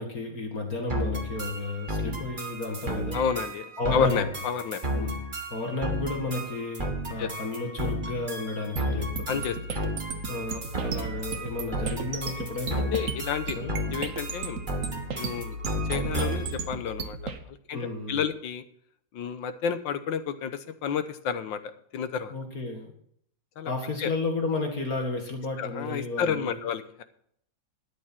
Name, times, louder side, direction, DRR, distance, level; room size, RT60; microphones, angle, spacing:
voice 1, 0.0-3.2 3.8-4.3 4.9-5.1 5.5-9.5 10.3-12.9 13.6-13.7 17.7-18.2 22.3-22.9 23.7-26.6, left 3 dB, 50° left, 3 dB, 2.3 m, -32 dB
sound 1, 0.9-16.6, right 1 dB, 25° right, 1.8 m, -33 dB
voice 2, 3.1-4.8 7.2-7.3 9.3-9.8 12.7-14.6 15.1-18.6 19.1-21.6 21.9-22.3 23.6-23.7 24.0-24.1 25.6-27.0, left 7 dB, 80° left, 11 dB, 1.7 m, -31 dB
sound 2, 8.8-17.4, right 3 dB, 50° right, 1.3 m, -36 dB
13.0 x 10.0 x 4.4 m, 0.67 s
omnidirectional pair, 2.1 m